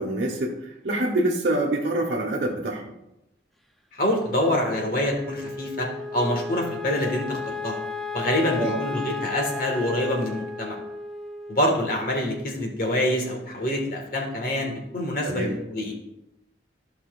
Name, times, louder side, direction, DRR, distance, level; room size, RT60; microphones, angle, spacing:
voice 1, 0.0-2.8 8.6-8.8 15.2-15.5, right 1 dB, 60° right, -3 dB, 1.1 m, -26 dB
voice 2, 3.9-7.8 8.1-10.8 11.5-16.0, left 1 dB, 50° left, 1 dB, 1.6 m, -26 dB
Wind instrument woodwind instrument, 4.4-12.8, left 3 dB, ahead, 0.4 m, -34 dB
13.5 x 5.7 x 2.4 m, 0.89 s
head